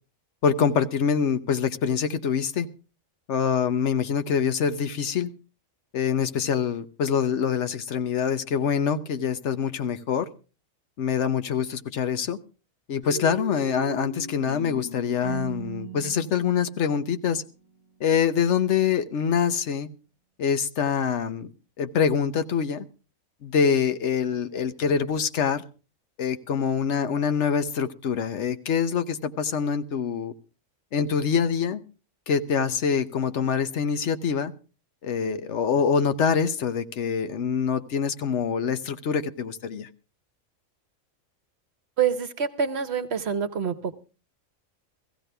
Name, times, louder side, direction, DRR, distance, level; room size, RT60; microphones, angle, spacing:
voice 1, 0.4-2.7 3.3-5.3 5.9-10.3 11.0-12.4 12.9-17.4 18.0-19.9 20.4-21.5 21.8-22.8 23.4-25.6 26.2-30.3 30.9-31.8 32.3-34.5 35.0-39.9, left 7 dB, 65° left, 11 dB, 1.1 m, -25 dB
sound 1, 13.0-17.7, equal, 20° left, 5.8 m, -38 dB
voice 2, 42.0-43.9, right 7 dB, 55° right, 11 dB, 1.1 m, -26 dB
16.5 x 15.5 x 3.3 m, 0.33 s
omnidirectional pair, 1.4 m